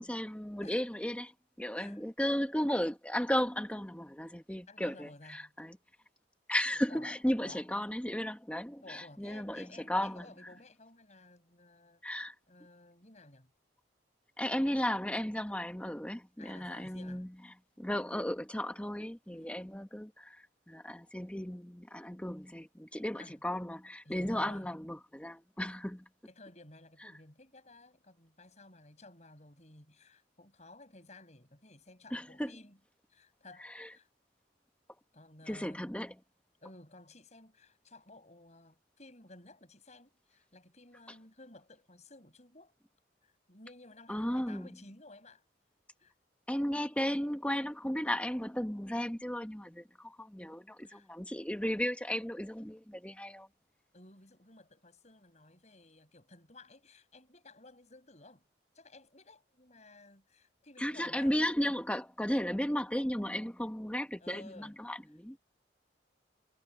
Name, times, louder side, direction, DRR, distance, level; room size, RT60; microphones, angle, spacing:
voice 1, 0.0-1.3 1.6-5.8 6.5-10.2 12.0-12.3 14.4-17.3 17.8-26.0 32.1-32.5 33.6-33.9 35.5-36.1 44.1-44.7 46.5-53.5 60.8-65.4, equal, 5° left, 1.1 m, -35 dB
voice 2, 4.7-5.5 6.9-7.6 8.8-12.0 12.5-13.5 16.4-17.2 19.3-19.7 23.1-23.4 24.1-24.7 26.3-32.8 33.1-34.1 35.1-35.9 36.6-42.7 43.2-45.4 46.0-46.1 50.8-51.1 53.9-58.4 58.7-61.4 64.2-64.8, left 2 dB, 40° left, 7.4 m, -55 dB
head